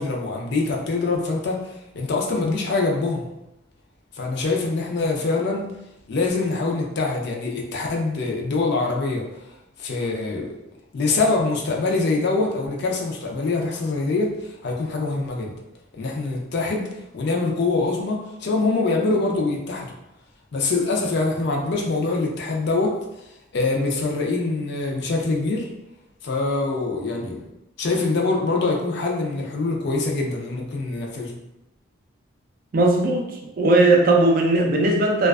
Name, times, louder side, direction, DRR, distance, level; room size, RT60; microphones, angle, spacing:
voice 1, 0.0-3.3 4.1-5.7 6.1-9.5 9.8-10.5 10.9-15.5 15.9-16.9 17.1-19.9 20.5-23.0 23.5-25.7 26.2-27.4 27.8-31.3, left 3 dB, 55° left, 0 dB, 0.4 m, -24 dB
voice 2, 32.7-35.3, right 2 dB, 45° right, 1 dB, 0.4 m, -18 dB
2.4 x 2.2 x 2.2 m, 0.90 s
head